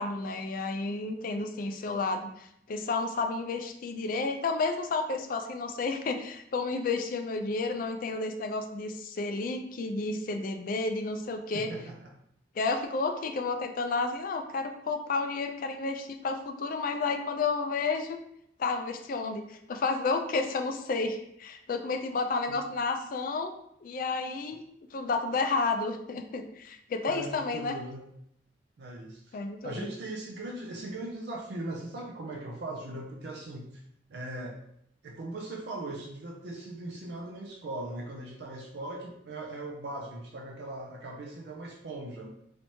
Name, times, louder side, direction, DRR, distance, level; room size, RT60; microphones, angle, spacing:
voice 1, 0.0-11.7 12.6-18.2 18.6-23.5 23.8-24.6 24.9-27.8 29.3-29.9, left 3 dB, 50° left, 5 dB, 0.4 m, -31 dB
voice 2, 11.5-12.1 22.5-22.6 27.1-28.1 28.8-33.8 34.1-34.6 35.0-42.3, right 2 dB, 65° right, 0 dB, 0.4 m, -39 dB
3.2 x 3.0 x 2.7 m, 0.74 s
head